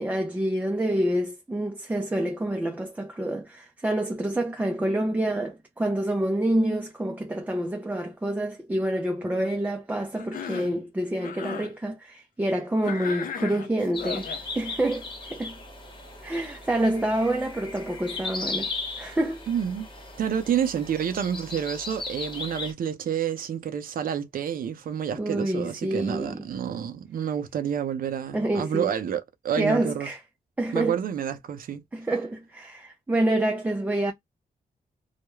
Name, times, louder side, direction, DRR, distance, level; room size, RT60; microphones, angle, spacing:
voice 1, 0.0-15.6 16.2-18.7 19.0-19.5 25.1-26.4 28.3-28.9 29.5-30.2 30.6-31.0 31.9-34.1, right 1 dB, 10° right, 0.4 m, -27 dB
Cough, 10.2-10.8 11.2-11.7 12.8-14.4, left 6 dB, 60° left, 0.6 m, -36 dB
sound 1, 13.9-22.7, left 3 dB, 30° left, 1.0 m, -37 dB
voice 2, 19.5-19.9 20.2-30.1 30.7-31.8, right 8 dB, 65° right, 0.5 m, -29 dB
2.3 x 2.0 x 3.0 m
wide cardioid pair, 140°, 16 cm